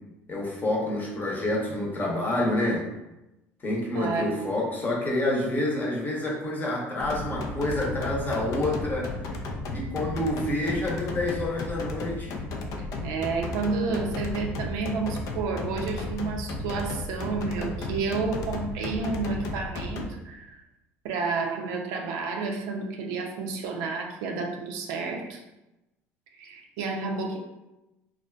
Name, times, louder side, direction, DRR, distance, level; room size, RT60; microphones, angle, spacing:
voice 1, 0.3-2.9 3.6-9.1 9.7-12.4, left 1 dB, 25° left, -2 dB, 0.8 m, -28 dB
voice 2, 3.9-4.5 13.0-20.6 21.0-25.4 26.3-27.4, right 4 dB, 75° right, 2 dB, 0.4 m, -30 dB
sound 1, 7.0-20.1, left 2 dB, 60° left, 0.4 m, -34 dB
2.6 x 2.3 x 2.2 m, 0.96 s
supercardioid pair, 80°, 7 cm